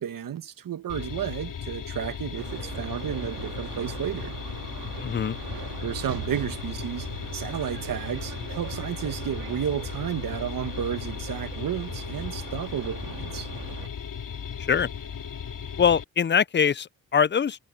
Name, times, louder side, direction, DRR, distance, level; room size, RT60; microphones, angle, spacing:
voice 1, 0.0-4.4 5.8-13.5, right 9 dB, 65° right, 1.8 m, -32 dB
sound 1, 0.9-16.0, left 7 dB, 60° left, 3.4 m, -36 dB
sound 2, 2.3-13.9, right 12 dB, 90° right, 2.2 m, -41 dB
voice 2, 5.0-5.4 14.7-14.9 15.8-17.6, left 7 dB, 30° left, 0.5 m, -23 dB
cardioid pair, 65°, 35 cm